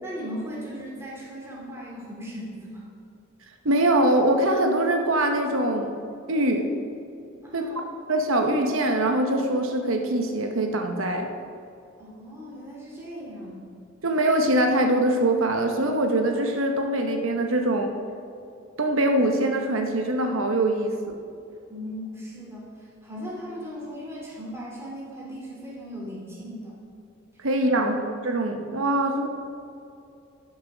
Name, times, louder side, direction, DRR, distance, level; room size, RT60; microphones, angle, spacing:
voice 1, 0.0-2.9 7.4-7.8 12.0-13.6 21.7-26.8 27.6-27.8, equal, 10° right, -5 dB, 2.7 m, -38 dB
voice 2, 3.6-5.9 6.3-6.6 7.5-7.7 8.1-11.3 14.0-17.9 18.8-21.2 27.4-29.3, right 1 dB, 75° right, 4 dB, 1.0 m, -23 dB
11.5 x 7.3 x 6.1 m, 2.6 s
head